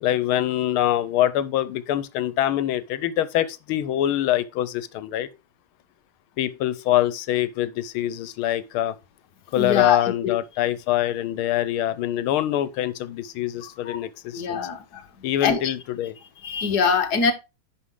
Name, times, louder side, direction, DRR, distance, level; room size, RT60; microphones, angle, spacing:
voice 1, 0.0-5.3 6.4-9.0 9.5-14.7 15.2-16.1, left 12 dB, 90° left, 1.6 m, -24 dB
voice 2, 9.6-10.3 13.8-14.0 14.3-15.0 15.4-15.7 16.4-17.3, left 5 dB, 55° left, 1.6 m, -23 dB
10.0 x 5.0 x 3.7 m
omnidirectional pair, 2.3 m